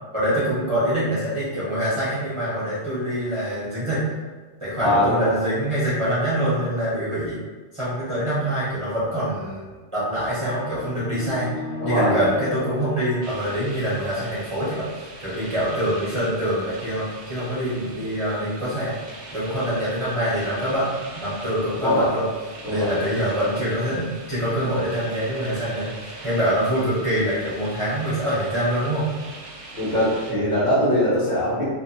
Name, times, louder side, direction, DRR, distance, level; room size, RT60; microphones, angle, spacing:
voice 1, 0.1-4.0 4.6-7.4 7.7-11.5 11.8-18.9 19.3-22.2 22.7-29.1, equal, 35° right, -10 dB, 0.6 m, -25 dB
voice 2, 4.8-5.4 11.8-12.2 21.8-22.1 22.6-23.0 24.6-24.7 29.7-31.7, left 1 dB, 45° left, -9 dB, 0.9 m, -22 dB
sound 1, 10.1-14.1, left 3 dB, 75° left, 0.9 m, -35 dB
sound 2, 13.2-30.3, right 2 dB, 70° right, 0.3 m, -41 dB
2.5 x 2.5 x 2.6 m, 1.3 s
omnidirectional pair, 1.2 m